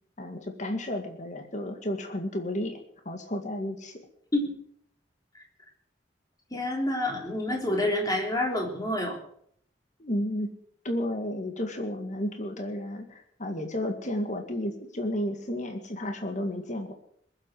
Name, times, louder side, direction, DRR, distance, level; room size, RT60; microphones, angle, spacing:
voice 1, 0.2-2.8 3.1-4.0 10.0-10.5 10.8-16.9, left 1 dB, 40° left, 5 dB, 2.1 m, -32 dB
voice 2, 6.5-9.2, left 1 dB, 20° left, 1 dB, 3.7 m, -28 dB
21.0 x 8.0 x 7.8 m, 0.66 s
head